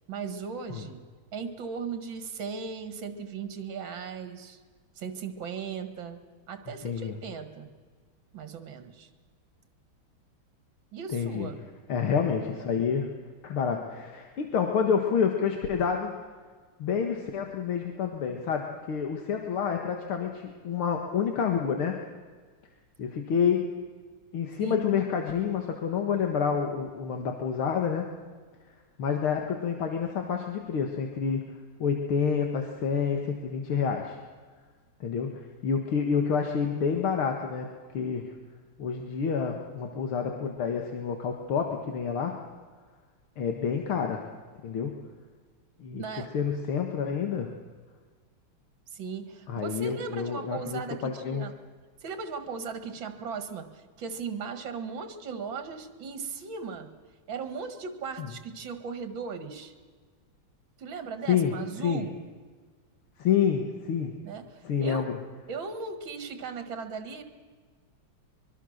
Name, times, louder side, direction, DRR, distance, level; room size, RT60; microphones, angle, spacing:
voice 1, 0.1-1.0 1.3-4.6 5.0-6.2 6.5-7.7 8.3-9.1 10.9-11.6 24.6-24.8 46.0-46.3 48.9-51.5 52.0-56.9 57.3-59.7 60.8-62.2 64.2-65.0 65.5-67.2, right 5 dB, 65° right, 8 dB, 2.4 m, -37 dB
voice 2, 6.8-7.1 11.1-11.5 11.9-13.1 13.4-16.2 16.8-22.0 23.0-23.7 24.3-28.1 29.0-31.5 31.8-34.2 35.0-37.7 37.9-38.2 38.8-42.4 43.4-44.2 44.6-44.9 45.8-47.5 49.5-51.5 58.2-58.3 61.3-61.5 61.8-62.0 63.2-64.1 64.6-65.1, left 7 dB, 85° left, 3 dB, 2.4 m, -28 dB
24.5 x 22.5 x 6.5 m, 1.5 s
omnidirectional pair, 2.3 m